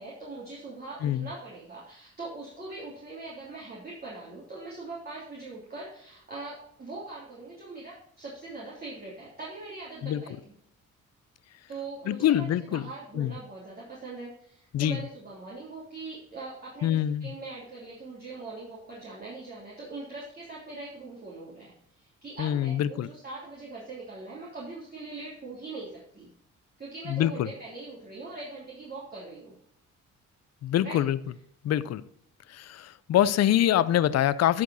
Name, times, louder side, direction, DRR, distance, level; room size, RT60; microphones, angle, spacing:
voice 1, 0.0-10.5 11.7-26.3 26.8-29.5 30.8-31.0 33.6-33.8, right 3 dB, 30° right, -7 dB, 3.2 m, -42 dB
voice 2, 12.1-12.9 13.1-13.3 14.7-15.0 16.8-17.3 22.4-23.1 27.1-27.5 30.6-31.2 31.6-32.0 32.5-34.6, left 11 dB, 55° left, 16 dB, 0.6 m, -25 dB
12.0 x 5.1 x 4.1 m, 0.68 s
cardioid pair, 90°, 30 cm